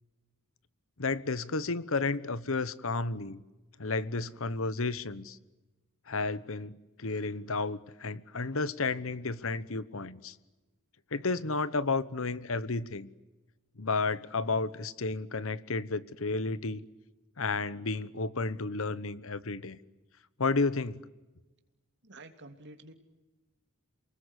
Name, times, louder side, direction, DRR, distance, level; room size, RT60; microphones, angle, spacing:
voice 1, 1.0-3.4 3.8-5.4 6.1-10.3 11.1-13.1 13.8-16.8 17.4-19.8 20.4-21.0, left 3 dB, 65° left, 1.1 m, -32 dB
voice 2, 22.0-22.9, right 2 dB, 55° right, 3.1 m, -49 dB
29.5 x 20.5 x 10.0 m
head